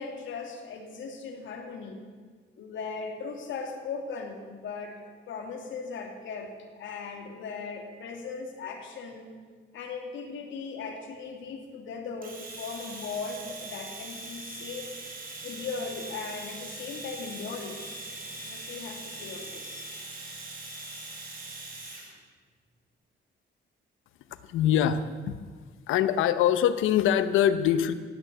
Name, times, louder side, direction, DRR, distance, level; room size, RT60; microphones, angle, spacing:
voice 1, 0.0-2.0 2.6-6.5 6.8-9.3 9.7-14.9 15.4-17.8 18.4-19.9, left 5 dB, 75° left, 3 dB, 2.8 m, -38 dB
Domestic sounds home sounds, 12.2-22.1, right 2 dB, 45° right, 4.3 m, -41 dB
voice 2, 24.4-25.4 25.9-27.9, left 10 dB, 90° left, 12 dB, 0.9 m, -23 dB
16.5 x 9.0 x 8.2 m, 1.5 s
cardioid pair, 90°, 20 cm